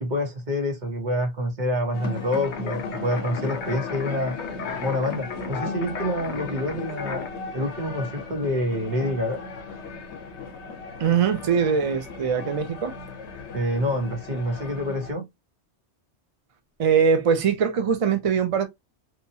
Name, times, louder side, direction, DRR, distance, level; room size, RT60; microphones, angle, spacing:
voice 1, 0.0-4.4 4.8-7.3 7.5-9.4 13.5-15.3, left 1 dB, 45° right, 1.1 m, -27 dB
sound 1, 1.9-15.1, left 4 dB, 75° left, 1.0 m, -37 dB
sound 2, 2.3-7.3, left 6 dB, 55° left, 0.6 m, -35 dB
voice 2, 11.0-12.9 16.8-18.7, right 6 dB, 65° right, 0.3 m, -22 dB
2.9 x 2.3 x 2.6 m
omnidirectional pair, 1.2 m